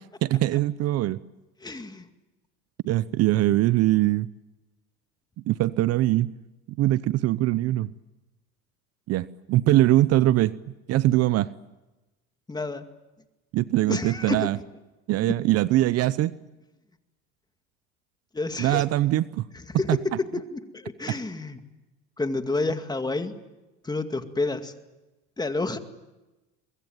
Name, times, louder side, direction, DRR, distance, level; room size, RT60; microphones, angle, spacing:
voice 1, 0.2-1.2 2.8-4.3 5.5-6.3 6.8-7.9 9.1-10.6 10.9-11.5 13.5-14.6 15.1-16.4 18.6-19.4 19.9-20.0, right 15 dB, 55° right, 18 dB, 0.8 m, -22 dB
voice 2, 1.6-2.1 9.7-9.8 12.5-12.8 13.9-14.5 18.3-18.8 19.7-19.9 20.3-21.6 22.2-23.3 23.8-24.7 25.4-25.8, left 2 dB, 15° left, 8 dB, 2.1 m, -29 dB
23.5 x 23.0 x 9.2 m, 1.1 s
supercardioid pair, 100°, 30 cm